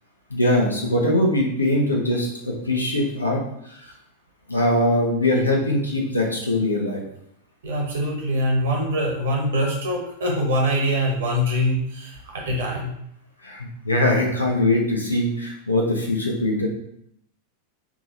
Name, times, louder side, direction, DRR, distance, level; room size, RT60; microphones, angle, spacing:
voice 1, 0.3-3.9 4.5-7.0 13.4-16.7, left 1 dB, 80° left, 0 dB, 1.0 m, -22 dB
voice 2, 7.6-12.9, equal, 60° right, -2 dB, 1.5 m, -23 dB
3.7 x 3.1 x 4.0 m, 0.74 s
figure-of-eight pair, 90°, 0 cm